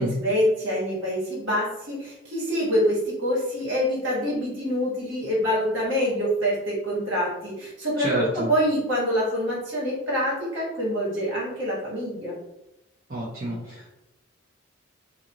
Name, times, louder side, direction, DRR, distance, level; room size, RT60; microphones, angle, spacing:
voice 1, 0.0-8.1 8.3-12.4, equal, 60° right, -7 dB, 1.4 m, -26 dB
voice 2, 8.0-8.5 13.1-13.9, right 1 dB, 45° right, -8 dB, 0.7 m, -28 dB
2.5 x 2.4 x 2.9 m, 0.91 s
head